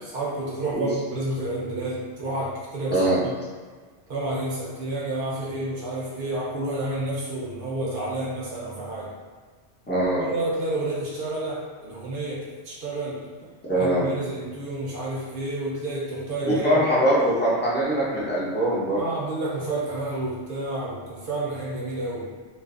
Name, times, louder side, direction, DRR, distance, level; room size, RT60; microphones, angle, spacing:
voice 1, 0.0-3.3 4.1-9.1 10.2-13.2 13.7-17.1 19.0-22.3, right 2 dB, 55° right, -5 dB, 0.7 m, -30 dB
voice 2, 2.9-3.2 9.9-10.3 13.7-14.1 16.5-19.0, right 1 dB, 15° left, -9 dB, 0.4 m, -22 dB
2.5 x 2.4 x 2.4 m, 1.5 s
omnidirectional pair, 1.2 m